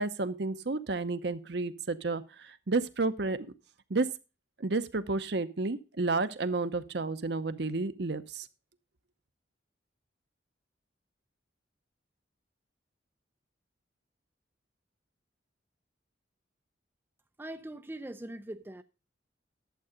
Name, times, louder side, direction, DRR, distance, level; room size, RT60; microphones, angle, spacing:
voice 1, 0.0-3.5 3.9-4.1 4.6-8.5, right 3 dB, 60° right, 0.8 m, -31 dB
voice 2, 17.4-18.8, right 1 dB, 10° right, 0.5 m, -41 dB
11.5 x 7.6 x 5.0 m
head